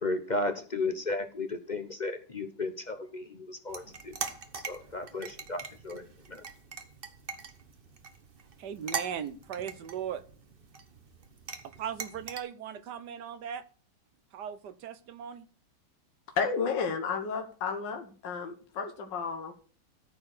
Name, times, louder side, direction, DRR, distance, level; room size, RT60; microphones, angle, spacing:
voice 1, 0.0-4.2 4.7-6.4, left 2 dB, 40° left, 8 dB, 0.7 m, -34 dB
sound 1, 3.7-12.4, right 5 dB, 40° right, 1.0 m, -42 dB
voice 2, 8.6-10.2 11.6-13.6 14.3-15.5, right 8 dB, 70° right, 13 dB, 1.4 m, -38 dB
voice 3, 16.4-19.5, left 5 dB, 80° left, 5 dB, 1.9 m, -32 dB
13.5 x 4.6 x 6.5 m, 0.41 s
omnidirectional pair, 1.9 m